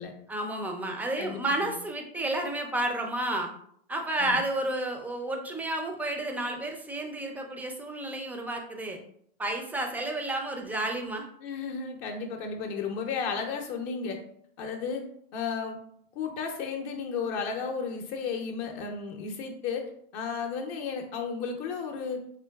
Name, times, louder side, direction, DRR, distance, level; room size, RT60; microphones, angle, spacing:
voice 1, 0.3-3.5 3.9-9.0 9.4-11.3, right 1 dB, 5° right, 3 dB, 0.4 m, -31 dB
voice 2, 11.4-14.2 14.6-15.1 15.3-15.8 16.2-22.3, left 5 dB, 45° left, 3 dB, 0.6 m, -33 dB
3.8 x 3.0 x 2.3 m, 0.66 s
hypercardioid pair, 110°, 32 cm